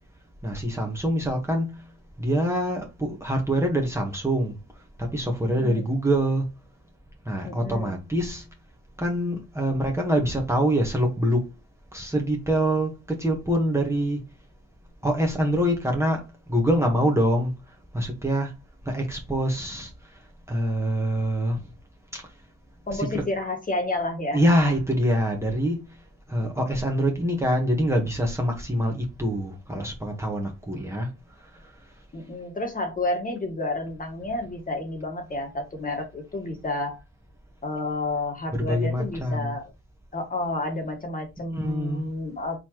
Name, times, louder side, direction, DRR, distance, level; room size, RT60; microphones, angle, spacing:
voice 1, 0.4-1.8 2.2-4.5 5.0-6.5 7.2-8.4 9.0-11.4 11.9-14.2 15.0-17.5 17.9-18.5 18.8-19.9 20.5-21.6 22.1-22.2 22.9-23.2 24.3-25.8 26.3-31.1 38.5-39.5 41.5-42.0, equal, 10° right, 1.4 m, -25 dB
voice 2, 5.5-5.9 7.4-8.0 22.9-24.4 26.4-26.6 32.1-37.0 37.6-39.6 40.1-42.6, left 2 dB, 30° left, 1.8 m, -30 dB
4.2 x 4.0 x 3.1 m
cardioid pair, 90°, 30 cm